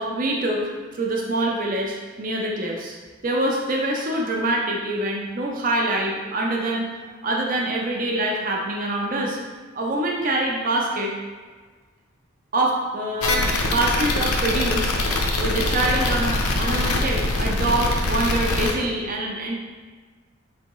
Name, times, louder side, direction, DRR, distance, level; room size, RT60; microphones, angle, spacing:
voice 1, 0.0-3.0 3.2-9.4 9.7-11.1 12.5-14.9 15.4-19.5, right 1 dB, 40° right, -1 dB, 0.5 m, -25 dB
sound 1, 13.2-18.7, left 2 dB, 90° left, 0.6 m, -23 dB
4.5 x 3.3 x 3.0 m, 1.4 s
head